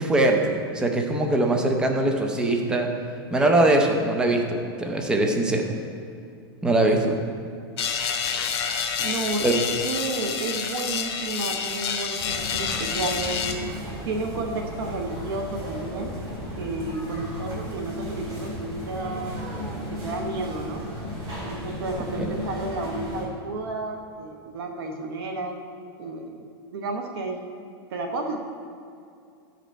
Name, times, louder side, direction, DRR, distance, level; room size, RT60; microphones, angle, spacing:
voice 1, 0.0-2.9 3.3-5.6 6.6-7.2 9.4-9.5 22.2-22.3, right 2 dB, 5° right, 2 dB, 0.5 m, -22 dB
sound 1, 7.8-13.5, left 6 dB, 80° left, 1.0 m, -28 dB
voice 2, 9.0-12.2 12.5-13.4 14.1-16.1 16.6-19.4 19.7-20.9 21.4-25.5 26.0-26.5 26.7-27.4 27.9-28.4, right 3 dB, 65° right, 3 dB, 0.9 m, -32 dB
sound 2, 12.2-23.2, equal, 25° right, 2.3 m, -35 dB
12.0 x 5.2 x 4.4 m, 2.4 s
supercardioid pair, 165°, 13 cm